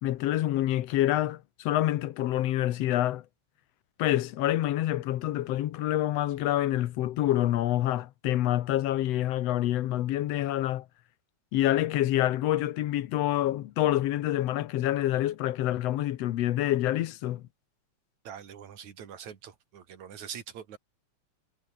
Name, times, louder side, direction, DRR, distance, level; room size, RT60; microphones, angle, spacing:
voice 1, 0.0-3.2 4.0-10.9 11.5-17.4, left 13 dB, 70° left, 1.9 m, -27 dB
voice 2, 18.3-20.8, right 8 dB, 75° right, 3.7 m, -43 dB
omnidirectional pair, 3.3 m